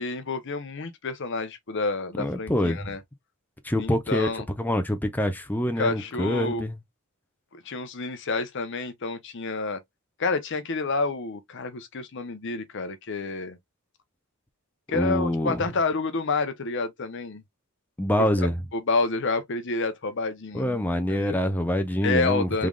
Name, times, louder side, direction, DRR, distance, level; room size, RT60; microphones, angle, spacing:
voice 1, 0.0-3.0 3.8-4.4 5.8-6.6 7.5-9.8 10.2-13.6 14.9-17.4 18.2-18.3 18.7-21.3 22.0-22.7, left 3 dB, 55° left, 0.7 m, -29 dB
voice 2, 2.2-3.0 3.6-6.8 14.9-15.7 18.0-18.6 20.5-22.7, left 1 dB, 10° left, 0.5 m, -26 dB
3.7 x 3.3 x 2.3 m
head